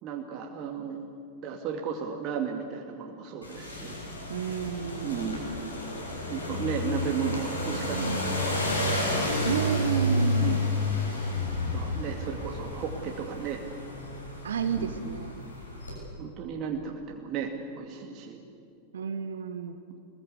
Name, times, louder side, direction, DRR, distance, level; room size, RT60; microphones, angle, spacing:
voice 1, 0.0-4.0 4.4-4.5 5.0-5.8 6.3-8.7 10.4-10.8 11.7-13.6 14.8-14.9 16.2-18.4, right 7 dB, 35° right, 1 dB, 2.3 m, -35 dB
sound 1, 3.4-16.0, left 1 dB, 75° left, 6.7 m, -31 dB
voice 2, 4.3-5.3 9.4-10.7 14.4-15.3 18.9-19.8, right 7 dB, 65° right, 8 dB, 1.1 m, -31 dB
24.0 x 20.5 x 8.3 m, 2.4 s
figure-of-eight pair, 90°, 0 cm